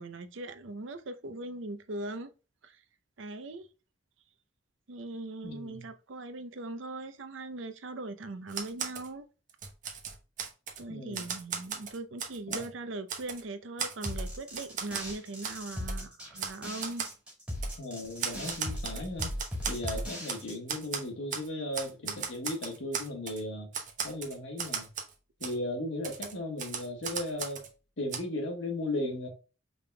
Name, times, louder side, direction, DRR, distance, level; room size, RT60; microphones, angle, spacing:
voice 1, 0.0-2.3 2.6-2.8 3.2-3.7 4.9-9.3 10.8-17.0, right 2 dB, 85° right, 0.6 m, -40 dB
voice 2, 5.4-5.9 10.9-11.3 12.5-12.6 17.8-19.3 19.7-23.7 24.0-24.9 25.4-27.6 28.0-29.3, left 1 dB, 80° left, 1.4 m, -36 dB
Typewriter, 8.5-9.1 9.5-10.8 11.1-12.7 13.1-13.4 13.8-15.1 15.4-15.6 15.9-16.0 16.4-16.6 16.8-17.1 17.6-17.8 18.2-20.4 20.7-21.5 21.7-23.4 23.7-25.1 25.4-25.5 26.0-27.7 28.1-28.2, right 6 dB, 45° right, 0.8 m, -36 dB
sound 1, 14.0-20.9, equal, 5° right, 1.9 m, -38 dB
5.2 x 3.5 x 2.2 m
head